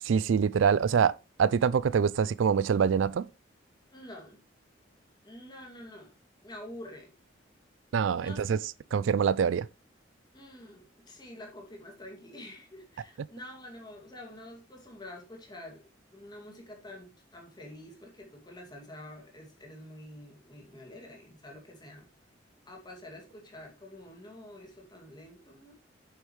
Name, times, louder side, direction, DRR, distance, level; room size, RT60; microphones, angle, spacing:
voice 1, 0.0-3.3 7.9-8.6 8.9-9.7, right 6 dB, 80° right, 0.4 m, -25 dB
voice 2, 3.9-4.4 5.2-6.1 6.4-7.1 8.1-8.4 10.3-22.1 22.7-25.7, left 1 dB, 20° left, 2.3 m, -47 dB
8.9 x 6.8 x 3.1 m
head